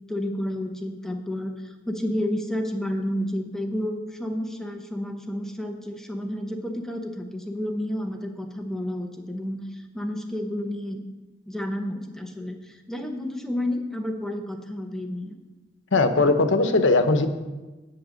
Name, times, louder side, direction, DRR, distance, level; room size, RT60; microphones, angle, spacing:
voice 1, 0.1-11.0 11.5-15.3, left 1 dB, 5° left, 4 dB, 0.8 m, -31 dB
voice 2, 15.9-17.3, left 3 dB, 85° left, 8 dB, 0.9 m, -19 dB
8.6 x 7.8 x 6.4 m, 1.2 s
head